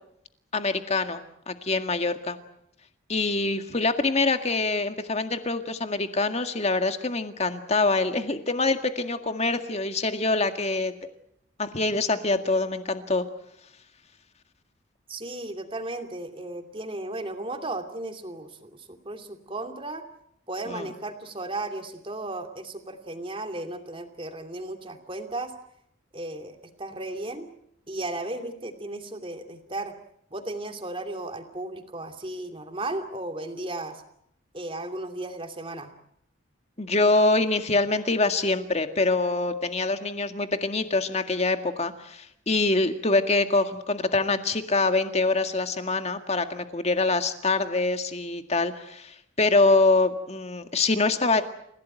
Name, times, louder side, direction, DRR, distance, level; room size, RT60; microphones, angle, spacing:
voice 1, 0.5-2.4 3.1-10.9 11.6-13.3 20.7-20.9 36.8-51.4, left 3 dB, 35° left, 8 dB, 1.9 m, -25 dB
voice 2, 15.1-20.0 20.5-25.5 26.1-27.5 27.9-30.0 30.3-34.0 34.5-35.9, right 2 dB, 25° right, 6 dB, 2.7 m, -35 dB
29.5 x 16.5 x 9.1 m, 0.75 s
head